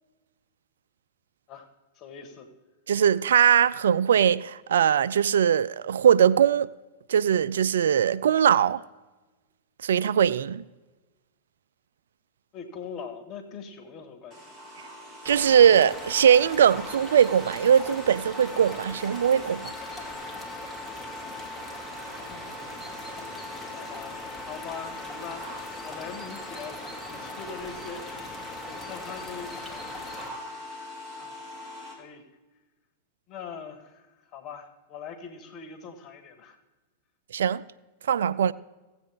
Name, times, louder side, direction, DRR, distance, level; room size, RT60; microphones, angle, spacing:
voice 1, 2.0-2.5 12.5-14.5 22.3-25.5 25.8-30.8 31.2-31.4 31.9-32.3 33.3-36.6, left 6 dB, 40° left, 1.7 m, -42 dB
voice 2, 2.9-6.7 7.1-8.8 9.8-10.6 15.3-19.7 37.3-37.6 38.1-38.5, right 8 dB, 75° right, 0.3 m, -21 dB
sound 1, 14.3-31.9, left 1 dB, 35° right, 3.9 m, -42 dB
sound 2, 15.3-30.3, left 2 dB, 5° left, 2.2 m, -41 dB
16.5 x 7.9 x 3.6 m
hypercardioid pair, 100°, 0 cm